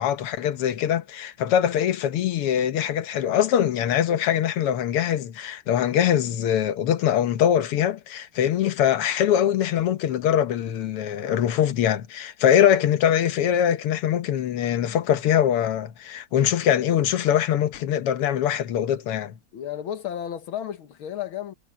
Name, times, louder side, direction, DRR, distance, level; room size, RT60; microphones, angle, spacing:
voice 1, 0.0-19.4, left 10 dB, 90° left, 2.0 m, -23 dB
voice 2, 19.5-21.5, left 10 dB, 70° left, 2.0 m, -32 dB
omnidirectional pair, 2.4 m